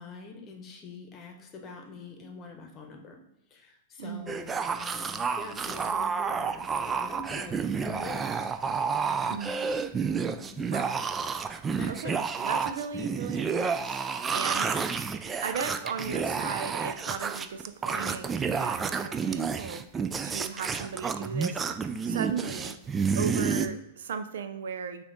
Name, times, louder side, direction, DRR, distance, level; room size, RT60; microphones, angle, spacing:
voice 1, 0.0-3.2 3.5-8.5 9.0-9.8 10.4-10.7 11.8-12.2 15.1-15.4, left 3 dB, 30° left, 3 dB, 0.9 m, -45 dB
voice 2, 4.0-4.4 9.3-9.6 10.7-10.9 11.9-12.2 12.4-14.0 14.3-15.0 15.4-19.8 20.2-21.7 22.1-22.8 23.1-25.0, right 6 dB, 75° right, 9 dB, 0.5 m, -36 dB
sound 1, 4.3-23.7, right 5 dB, 20° right, 0.3 m, -30 dB
5.6 x 2.4 x 3.9 m, 0.86 s
hypercardioid pair, 120°, 0 cm